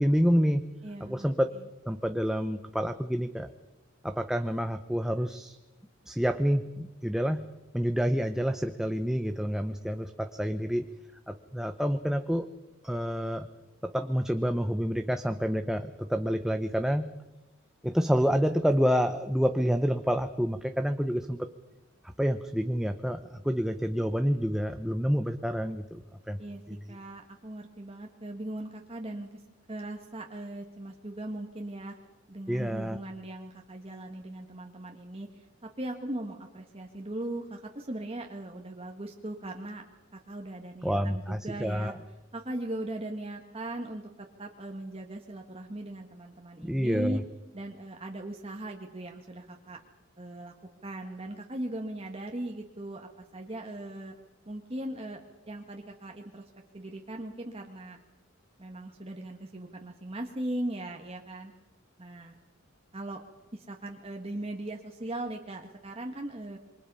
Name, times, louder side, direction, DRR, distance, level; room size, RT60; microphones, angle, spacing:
voice 1, 0.0-0.6 1.0-1.5 1.9-3.5 4.0-5.6 6.1-7.4 7.7-10.9 11.3-12.5 12.8-13.5 13.8-17.1 17.8-21.5 22.2-26.4 26.7-26.8 32.5-33.0 40.8-41.9 46.6-47.2, equal, ahead, 7 dB, 0.8 m, -28 dB
voice 2, 0.8-1.3 1.5-1.7 26.4-26.6 26.9-29.3 29.7-31.9 32.3-35.5 35.8-39.8 40.1-41.9 42.3-44.0 44.4-47.2 47.5-49.8 50.2-50.5 50.8-54.1 54.4-55.2 55.5-58.0 58.6-61.5 62.0-62.4 62.9-63.2 63.5-66.6, right 1 dB, 30° right, 2 dB, 1.7 m, -39 dB
27.5 x 24.0 x 5.6 m, 1.1 s
head